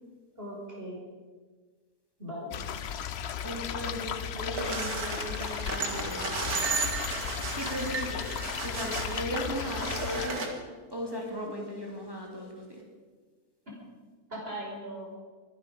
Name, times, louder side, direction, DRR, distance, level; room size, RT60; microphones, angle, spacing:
voice 1, 0.4-1.0 2.2-2.5 14.3-15.2, equal, 40° right, -4 dB, 5.7 m, -39 dB
sound 1, 2.5-10.3, left 8 dB, 55° left, 0.8 m, -35 dB
voice 2, 3.4-6.3 7.5-8.3 8.6-10.6 10.9-12.8, equal, 15° right, -2 dB, 3.0 m, -37 dB
sound 2, 4.5-10.5, right 3 dB, 75° right, 2.4 m, -34 dB
23.5 x 11.0 x 5.3 m, 1.5 s
omnidirectional pair, 1.6 m